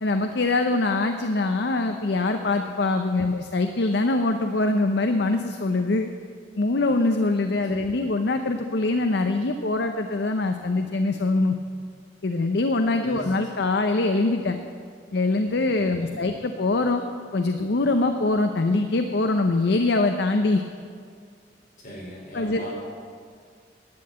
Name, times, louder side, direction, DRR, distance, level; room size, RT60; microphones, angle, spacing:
voice 1, 0.0-6.1 6.6-11.6 12.2-14.6 15.1-17.0 17.3-20.6 22.3-22.6, left 2 dB, 65° left, 6 dB, 0.7 m, -23 dB
voice 2, 7.5-7.9 13.0-13.3 15.7-16.1 21.8-22.8, left 1 dB, 45° left, -5 dB, 4.5 m, -39 dB
11.5 x 8.7 x 8.6 m, 2.1 s
head